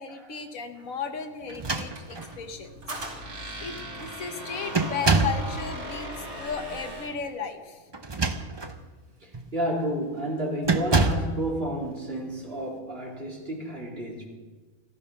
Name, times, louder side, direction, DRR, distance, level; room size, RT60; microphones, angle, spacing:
voice 1, 0.0-2.7 3.6-7.8, left 6 dB, 70° left, 7 dB, 1.5 m, -35 dB
sound 1, 1.5-2.4 3.3-3.4 3.7-4.1 4.7-5.5 7.9-8.8 9.3-9.5 10.6-11.4, right 3 dB, 25° right, 0.7 m, -26 dB
Squeak, 1.9-7.2, right 1 dB, 85° right, 3.2 m, -38 dB
voice 2, 9.2-14.2, right 1 dB, 40° right, -2 dB, 3.5 m, -31 dB
15.0 x 14.5 x 5.9 m, 1.3 s
omnidirectional pair, 1.5 m